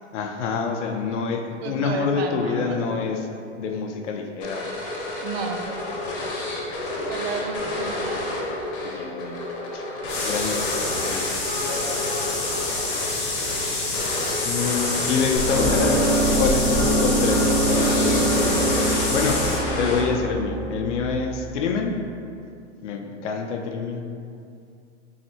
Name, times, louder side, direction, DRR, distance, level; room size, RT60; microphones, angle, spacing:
voice 1, 0.1-3.3 3.6-4.7 8.8-9.4 9.7-9.8 10.2-11.3 14.4-16.1 16.4-18.5 19.1-22.0 22.8-24.1, left 5 dB, 75° left, 3 dB, 0.6 m, -27 dB
voice 2, 1.6-2.8 5.2-5.7 7.1-8.3, right 5 dB, 60° right, 4 dB, 0.5 m, -32 dB
sound 1, 4.4-20.4, left 2 dB, 45° left, 1.0 m, -30 dB
sound 2, 10.1-19.6, left 3 dB, 20° left, 0.9 m, -28 dB
sound 3, 15.4-21.4, right 1 dB, ahead, 0.3 m, -23 dB
4.0 x 3.1 x 2.9 m, 2.4 s
hypercardioid pair, 135°, 37 cm